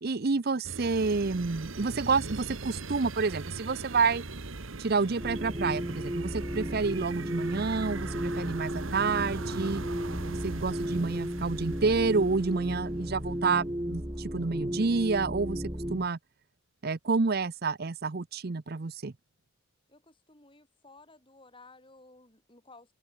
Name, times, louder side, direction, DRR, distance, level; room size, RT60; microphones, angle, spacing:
voice 1, 0.0-4.2 4.8-9.8 10.2-16.2 16.8-19.1, right 4 dB, 50° right, 0.7 m, -29 dB
sound 1, 0.6-13.0, right 3 dB, 80° right, 1.6 m, -40 dB
sound 2, 5.2-16.1, equal, 15° right, 2.1 m, -34 dB
voice 2, 19.9-22.9, left 3 dB, 25° left, 7.7 m, -56 dB
head